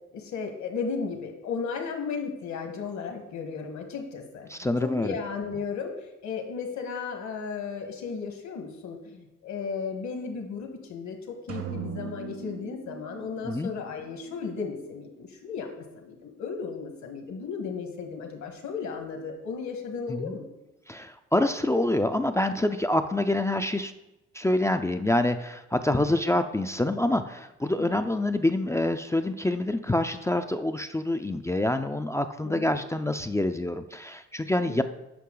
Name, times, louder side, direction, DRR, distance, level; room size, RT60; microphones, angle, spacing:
voice 1, 0.1-4.5 4.8-20.4 25.9-26.2 27.8-27.9 32.4-32.8 34.7-34.8, left 5 dB, 70° left, 4 dB, 1.6 m, -35 dB
voice 2, 4.5-5.2 13.4-13.7 20.1-20.3 20.9-23.9 24.3-34.8, left 1 dB, 10° left, 8 dB, 0.4 m, -26 dB
sound 1, 11.5-15.3, right 8 dB, 50° right, 0.9 m, -41 dB
8.5 x 5.8 x 3.9 m, 0.94 s
cardioid pair, 90°, 30 cm